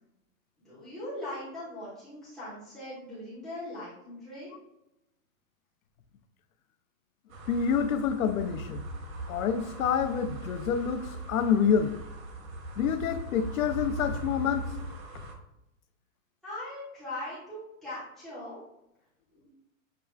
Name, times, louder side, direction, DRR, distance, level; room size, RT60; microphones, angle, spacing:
voice 1, 0.6-4.6 16.4-18.6 19.3-19.5, left 1 dB, ahead, 0.4 m, -40 dB
sound 1, 7.3-15.3, right 2 dB, 80° right, 1.1 m, -39 dB
voice 2, 7.5-8.8 9.3-12.0 12.8-14.7, left 7 dB, 75° left, 0.6 m, -27 dB
6.7 x 2.3 x 2.3 m
hypercardioid pair, 165°, 41 cm